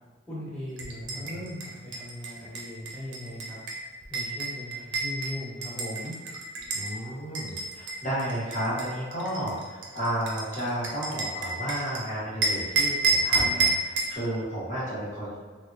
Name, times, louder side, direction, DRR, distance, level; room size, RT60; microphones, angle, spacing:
voice 1, 0.3-3.6 4.1-6.1, left 1 dB, 5° left, -10 dB, 1.0 m, -38 dB
sound 1, 0.8-6.9 7.3-12.0 12.4-14.2, right 3 dB, 75° right, 0.5 m, -29 dB
voice 2, 1.1-1.4 6.7-15.3, right 1 dB, 45° left, -8 dB, 1.1 m, -32 dB
3.3 x 2.0 x 2.5 m, 1.4 s
head